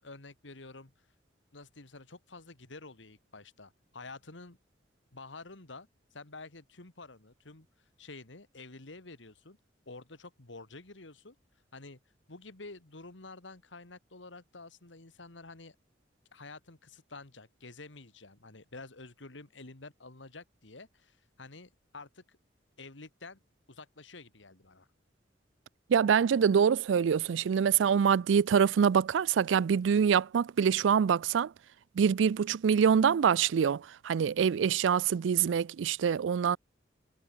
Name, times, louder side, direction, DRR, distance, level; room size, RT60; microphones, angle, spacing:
voice 1, 0.0-0.9 1.5-4.6 5.1-7.7 8.0-9.6 9.9-11.4 11.7-12.0 12.3-15.8 16.3-22.4 22.8-23.4 23.7-24.9, left 3 dB, 85° left, 2.2 m, -49 dB
voice 2, 25.9-31.5 32.0-36.6, right 7 dB, 90° right, 0.4 m, -25 dB
head